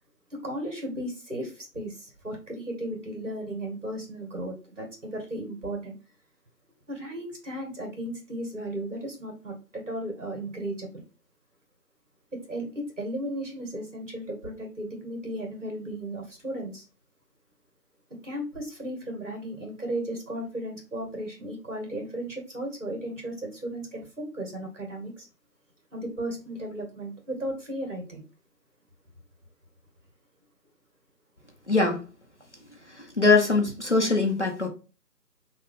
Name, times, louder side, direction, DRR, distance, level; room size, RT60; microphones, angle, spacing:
voice 1, 0.3-5.9 6.9-11.0 12.5-16.9 18.2-25.3 25.9-28.2, right 1 dB, 45° right, 1 dB, 2.1 m, -35 dB
voice 2, 31.7-32.0 33.2-34.7, left 3 dB, 45° left, 1 dB, 0.9 m, -22 dB
5.7 x 2.4 x 3.7 m, 0.33 s
figure-of-eight pair, 165°, 50 cm